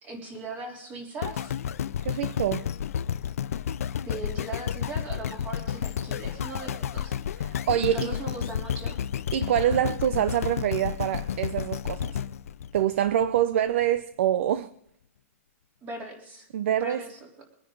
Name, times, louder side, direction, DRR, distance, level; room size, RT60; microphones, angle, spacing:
voice 1, 0.0-1.6 4.0-7.2 7.9-9.0 15.8-16.5 16.8-17.4, right 2 dB, 20° right, 3.4 m, -39 dB
sound 1, 1.2-13.4 14.0-14.1, left 9 dB, 85° left, 0.6 m, -31 dB
voice 2, 2.0-2.7 7.4-8.1 9.3-12.2 12.7-14.7 16.5-17.1, right 11 dB, 55° right, 0.6 m, -25 dB
24.0 x 9.8 x 3.9 m
hypercardioid pair, 165°, 8 cm